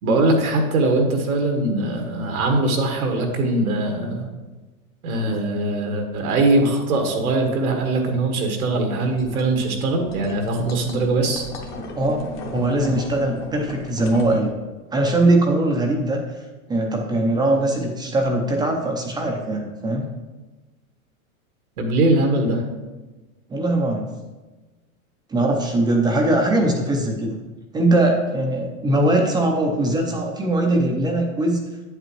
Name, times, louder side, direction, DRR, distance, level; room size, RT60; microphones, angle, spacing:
voice 1, 0.0-4.3 5.0-11.5 21.8-22.6, right 2 dB, 90° right, 3 dB, 1.8 m, -21 dB
sound 1, 9.2-14.4, left 2 dB, 30° left, 1.0 m, -36 dB
voice 2, 12.0-12.3 12.5-14.5 14.9-16.2 16.7-20.1 23.5-24.1 25.3-27.4 27.7-31.6, right 1 dB, 10° right, 2 dB, 0.5 m, -21 dB
8.6 x 7.8 x 3.1 m, 1.2 s
supercardioid pair, 140°, 42 cm